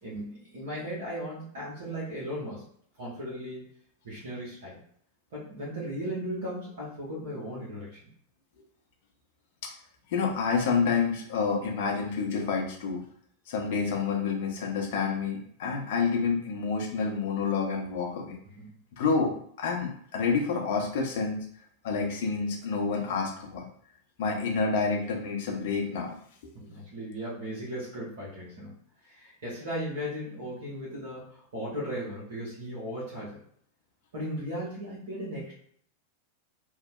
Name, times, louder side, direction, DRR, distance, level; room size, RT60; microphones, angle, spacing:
voice 1, 0.0-2.6 3.0-3.6 4.0-4.8 5.3-8.1 18.6-18.7 26.5-28.7 29.0-33.4 34.1-35.5, equal, 60° right, -7 dB, 0.9 m, -36 dB
voice 2, 10.1-13.0 13.5-18.4 19.0-21.4 21.8-23.7 24.2-26.1, left 5 dB, 50° left, 0 dB, 0.5 m, -28 dB
2.8 x 2.0 x 2.3 m, 0.63 s
figure-of-eight pair, 90°, 0 cm